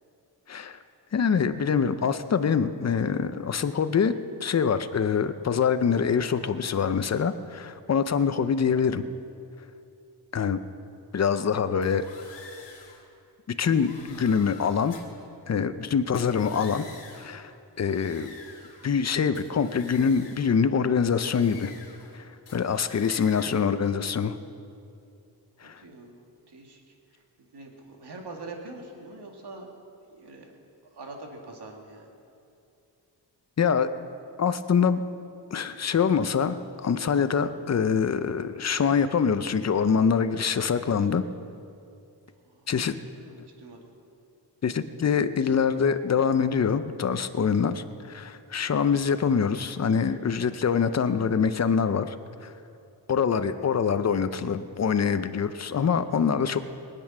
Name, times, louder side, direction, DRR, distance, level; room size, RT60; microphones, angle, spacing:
voice 1, 0.5-0.8 1.1-9.1 10.3-10.6 11.1-12.0 13.6-14.9 15.5-16.8 17.1-17.5 17.8-18.4 18.8-21.7 22.1-24.4 25.6-25.8 33.6-33.9 34.4-35.0 35.5-36.6 36.8-41.2 42.7-42.9 44.6-52.2 52.4-52.5 53.1-56.6, left 6 dB, 40° left, 11 dB, 0.6 m, -25 dB
sound 1, 11.8-13.0 13.6-15.2 16.0-17.4 17.8-19.0 19.3-20.6 21.1-22.2 22.5-23.7, left 4 dB, 80° left, 2.8 m, -48 dB
voice 2, 25.6-27.2 27.5-29.8 30.1-30.5 30.9-32.1 42.4-42.7 43.0-43.9, right 2 dB, 65° right, 1 dB, 2.2 m, -44 dB
23.0 x 8.7 x 6.1 m, 2.6 s
wide cardioid pair, 150°, 42 cm